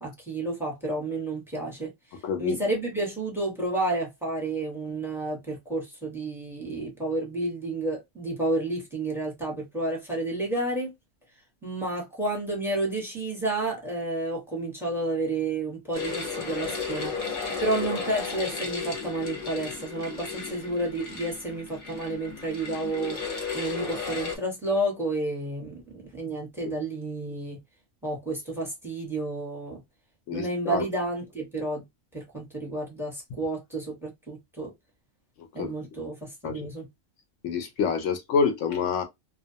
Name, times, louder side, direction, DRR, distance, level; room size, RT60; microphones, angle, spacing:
voice 1, 0.0-1.9 2.4-10.9 11.6-27.6 28.0-29.8 30.3-31.8 32.1-34.7 35.5-36.9, right 2 dB, ahead, 0.8 m, -31 dB
voice 2, 2.2-2.6 30.3-30.8 35.6-35.7 36.4-36.7 37.4-39.0, left 6 dB, 75° left, 0.9 m, -27 dB
sound 1, 15.9-24.4, left 5 dB, 45° left, 0.8 m, -34 dB
2.4 x 2.2 x 2.7 m
omnidirectional pair, 1.3 m